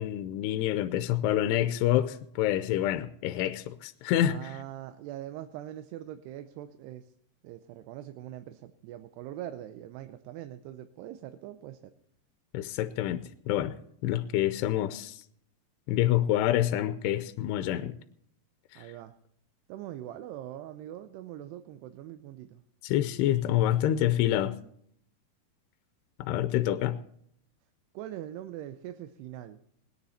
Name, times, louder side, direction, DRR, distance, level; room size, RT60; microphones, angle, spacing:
voice 1, 0.0-4.5 12.5-13.7 14.0-15.2 15.9-18.0 22.8-24.6 26.2-27.0, left 12 dB, 85° left, 2.7 m, -27 dB
voice 2, 4.2-7.1 7.4-11.9 18.8-19.1 19.7-22.6 27.9-29.6, right 12 dB, 85° right, 2.8 m, -42 dB
20.0 x 9.8 x 4.2 m
omnidirectional pair, 4.7 m